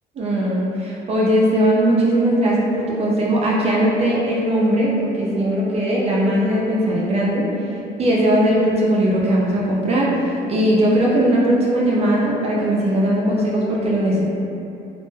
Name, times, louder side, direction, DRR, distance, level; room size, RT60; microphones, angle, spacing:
voice 1, 0.2-7.5 8.0-14.2, right 1 dB, 40° right, -4 dB, 0.4 m, -19 dB
2.1 x 2.0 x 3.0 m, 2.7 s
cardioid pair, 110°, 17 cm